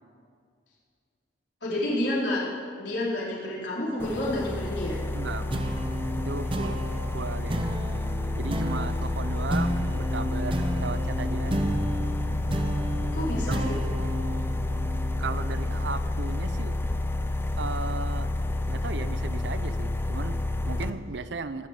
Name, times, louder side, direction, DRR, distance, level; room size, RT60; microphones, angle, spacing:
voice 1, 1.6-2.5 2.7-5.0 13.1-13.7, left 1 dB, 70° left, -6 dB, 4.3 m, -29 dB
sound 1, 4.0-20.9, left 2 dB, 10° left, 0.6 m, -30 dB
voice 2, 5.1-5.6 6.2-6.8 7.1-7.7 8.3-11.6 13.5-13.6 15.2-16.8 17.6-18.3 18.7-21.7, right 4 dB, 70° right, 13 dB, 0.6 m, -36 dB
sound 2, 5.5-16.3, right 1 dB, 30° right, 0.8 m, -32 dB
19.5 x 6.7 x 8.4 m, 2.2 s
head